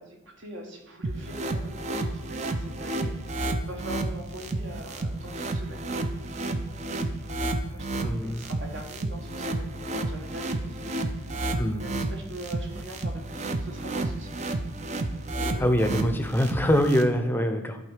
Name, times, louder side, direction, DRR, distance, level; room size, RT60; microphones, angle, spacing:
voice 1, 0.0-5.8 7.7-10.8 11.8-14.4 15.4-15.6 17.3-17.5, right 1 dB, 60° right, 2 dB, 1.5 m, -43 dB
sound 1, 1.0-17.0, right 2 dB, 35° right, 0.5 m, -31 dB
voice 2, 8.0-8.4 11.6-11.8 15.6-17.8, equal, 10° left, 7 dB, 0.6 m, -24 dB
11.0 x 4.2 x 4.9 m, 1.0 s
head